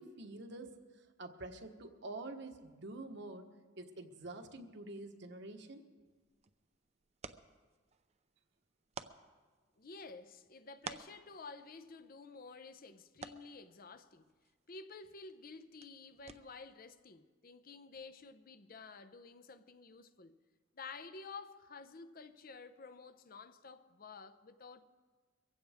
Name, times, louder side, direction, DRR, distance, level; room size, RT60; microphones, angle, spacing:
voice 1, 0.0-3.4 3.8-5.8, right 2 dB, 65° right, 1.3 m, -47 dB
sound 1, 6.0-16.8, right 5 dB, 35° right, 0.6 m, -55 dB
voice 2, 9.8-14.3 14.7-20.4 20.7-24.8, left 4 dB, 50° left, 0.7 m, -51 dB
23.0 x 15.5 x 3.6 m
head